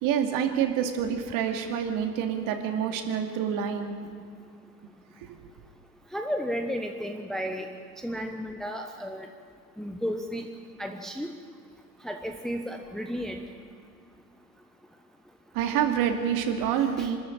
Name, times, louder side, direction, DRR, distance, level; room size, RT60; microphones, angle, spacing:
voice 1, 0.0-4.0 5.2-5.4 15.5-17.2, right 8 dB, 40° right, 5 dB, 2.6 m, -27 dB
voice 2, 6.1-7.7 8.0-9.3 9.8-10.5 10.8-11.3 12.0-13.4 17.0-17.1, equal, ahead, 4 dB, 1.0 m, -33 dB
25.5 x 13.0 x 8.9 m, 2.2 s
figure-of-eight pair, 90°, 49 cm